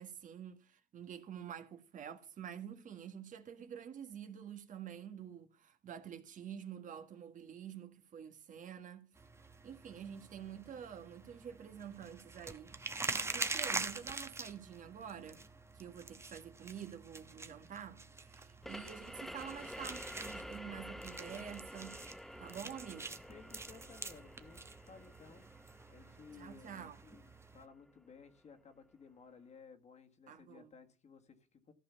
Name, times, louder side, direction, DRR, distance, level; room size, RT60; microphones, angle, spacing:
voice 1, 0.0-9.1 9.6-15.4 15.7-22.0 22.4-23.1 26.4-27.0 30.3-30.7, right 8 dB, 50° right, 1.6 m, -48 dB
sound 1, 9.2-27.6, right 3 dB, 15° right, 1.1 m, -45 dB
sound 2, 18.6-28.0, equal, ahead, 0.5 m, -50 dB
voice 2, 23.0-31.7, left 5 dB, 40° left, 1.8 m, -58 dB
14.5 x 5.4 x 7.1 m
cardioid pair, 110°, 17 cm